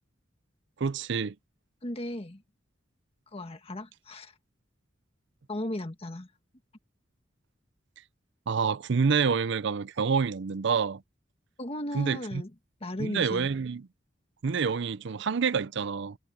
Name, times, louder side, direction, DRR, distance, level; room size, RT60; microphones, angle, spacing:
voice 1, 0.8-1.3 8.5-11.0 11.9-12.4 13.0-13.8 14.4-16.2, right 5 dB, 65° right, 0.5 m, -27 dB
voice 2, 1.8-2.4 3.3-4.3 5.5-6.3 11.6-12.5 12.8-13.5, left 1 dB, 30° left, 1.6 m, -36 dB
head